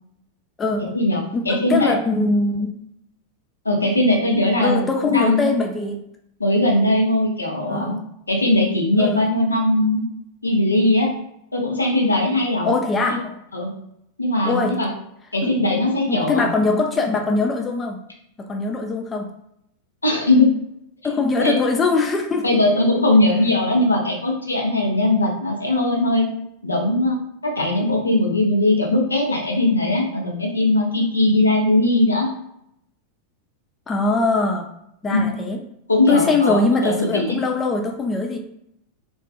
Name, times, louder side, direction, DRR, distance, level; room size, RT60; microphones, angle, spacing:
voice 1, 0.8-2.0 3.6-5.4 6.4-8.0 8.3-10.1 10.4-11.1 11.5-12.7 13.1-13.2 13.5-13.7 14.2-14.9 15.3-16.5 20.0-20.5 21.4-21.6 22.4-26.3 26.6-32.3 35.1-35.2 35.9-37.4, left 1 dB, 80° left, 0 dB, 0.6 m, -19 dB
voice 2, 1.3-2.7 4.6-6.0 7.7-8.0 9.0-9.3 12.6-13.4 14.4-14.8 15.4-15.5 16.1-18.0 18.5-19.3 21.0-22.4 33.9-34.7 35.0-35.6 36.1-38.4, left 3 dB, 20° left, 3 dB, 0.3 m, -21 dB
2.5 x 2.3 x 2.3 m, 0.76 s
figure-of-eight pair, 90°, 0 cm